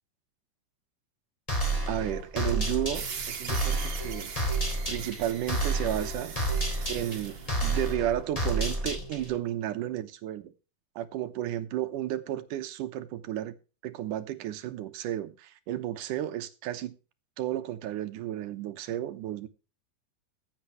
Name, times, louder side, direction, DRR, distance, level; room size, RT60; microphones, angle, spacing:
sound 1, 1.5-9.4, right 2 dB, 10° left, 3.3 m, -30 dB
voice 1, 1.9-4.3 4.9-6.4 6.9-10.5 11.0-13.6 13.8-17.0 17.4-19.5, right 12 dB, 80° right, 2.5 m, -33 dB
sound 2, 2.9-7.9, right 6 dB, 50° right, 2.5 m, -41 dB
15.0 x 8.8 x 3.2 m
omnidirectional pair, 3.7 m